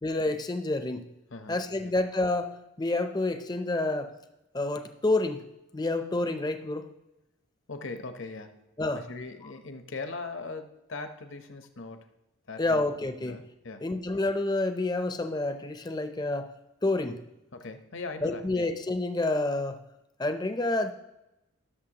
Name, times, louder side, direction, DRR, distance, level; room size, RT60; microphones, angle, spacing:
voice 1, 0.0-1.1 1.5-4.1 4.5-5.4 5.7-6.9 8.8-9.1 12.6-13.4 13.8-16.5 16.8-17.2 18.2-19.8 20.2-20.9, left 2 dB, 20° left, 8 dB, 0.5 m, -28 dB
voice 2, 1.3-1.9 7.7-8.7 8.9-12.1 12.5-13.9 17.5-18.7, left 3 dB, 60° left, 8 dB, 0.8 m, -40 dB
16.0 x 6.9 x 2.9 m, 0.92 s
head